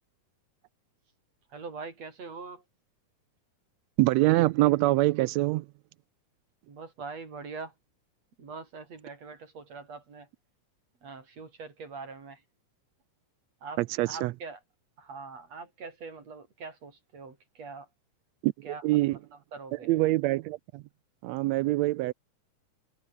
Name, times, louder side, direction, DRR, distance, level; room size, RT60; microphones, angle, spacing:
voice 1, 1.5-2.6 6.7-7.7 8.4-10.3 11.0-12.4 13.6-14.6 15.0-17.9 18.6-18.8 19.1-19.2 19.5-19.9, right 4 dB, 55° right, 5.1 m, -43 dB
voice 2, 4.0-5.7 13.8-14.3 18.4-19.2 19.7-20.8 21.2-22.1, right 18 dB, 80° right, 1.6 m, -25 dB
omnidirectional pair, 3.6 m